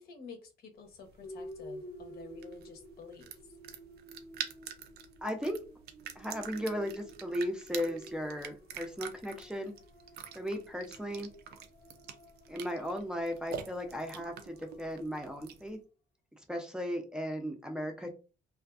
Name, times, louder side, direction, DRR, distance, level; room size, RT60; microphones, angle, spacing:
voice 1, 0.0-3.3, left 5 dB, 80° left, 0.8 m, -50 dB
sound 1, 0.9-15.7, right 8 dB, 85° right, 0.4 m, -47 dB
sound 2, 1.2-15.4, equal, 40° left, 0.6 m, -52 dB
voice 2, 5.2-5.6 6.2-9.7 10.3-11.3 12.5-15.8 16.5-18.1, equal, 5° right, 0.4 m, -36 dB
2.4 x 2.4 x 2.3 m
cardioid pair, 135°, 16 cm